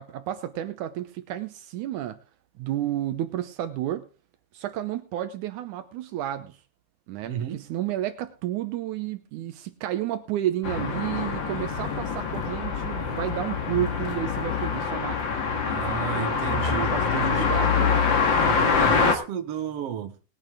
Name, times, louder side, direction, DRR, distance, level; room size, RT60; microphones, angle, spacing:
voice 1, 0.0-2.2 2.6-4.0 4.5-6.6 7.1-15.2 16.2-18.2, right 12 dB, 75° right, 2.3 m, -31 dB
voice 2, 7.3-7.6 15.7-17.6 18.3-20.2, right 9 dB, 60° right, 2.1 m, -33 dB
sound 1, 10.6-19.2, left 5 dB, 45° left, 2.0 m, -25 dB
20.0 x 8.8 x 3.6 m
omnidirectional pair, 3.6 m